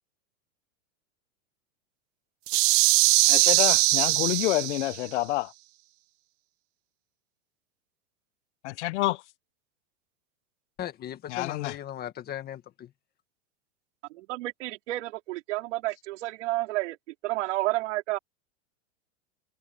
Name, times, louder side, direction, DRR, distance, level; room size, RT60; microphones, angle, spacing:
sound 1, 2.5-5.0, right 21 dB, 35° right, 1.0 m, -21 dB
voice 1, 3.2-5.5 8.6-9.2 11.3-11.8, left 18 dB, 60° left, 1.1 m, -28 dB
voice 2, 10.8-12.9, left 11 dB, 25° left, 1.8 m, -37 dB
voice 3, 14.1-17.0 17.2-18.2, right 18 dB, 60° right, 4.3 m, -30 dB
supercardioid pair, 150°, 40 cm